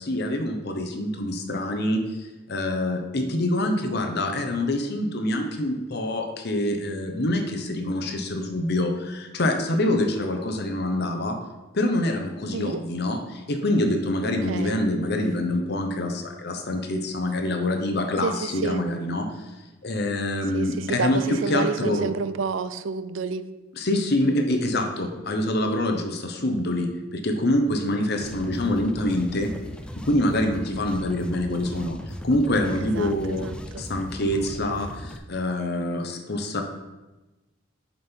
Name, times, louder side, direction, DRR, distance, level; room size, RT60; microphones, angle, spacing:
voice 1, 0.0-11.4 11.7-19.3 19.8-22.1 23.8-29.5 30.0-32.0 32.2-33.5 33.8-36.6, left 1 dB, 55° left, 4 dB, 0.9 m, -25 dB
voice 2, 12.5-12.8 14.2-14.8 18.2-18.8 20.5-23.5 32.7-33.8, right 5 dB, 75° right, 13 dB, 0.5 m, -30 dB
sound 1, 28.1-35.2, equal, 5° left, 0.4 m, -37 dB
7.2 x 5.3 x 4.5 m, 1.1 s
head